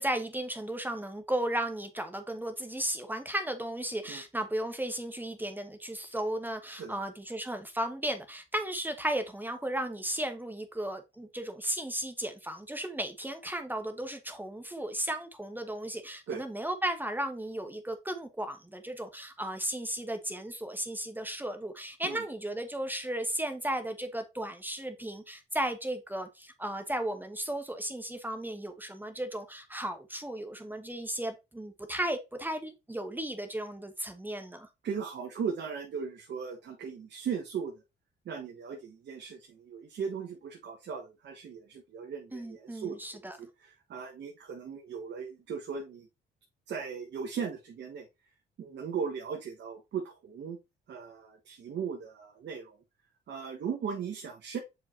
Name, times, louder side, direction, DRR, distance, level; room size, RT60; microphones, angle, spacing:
voice 1, 0.0-34.7 42.3-43.4, right 1 dB, 10° right, 1.1 m, -35 dB
voice 2, 34.8-37.8 38.2-43.0 43.4-46.1 46.7-48.1 48.6-50.6 50.9-52.8 53.3-54.6, right 6 dB, 65° right, 1.5 m, -38 dB
7.4 x 4.7 x 2.8 m
cardioid pair, 90°, 20 cm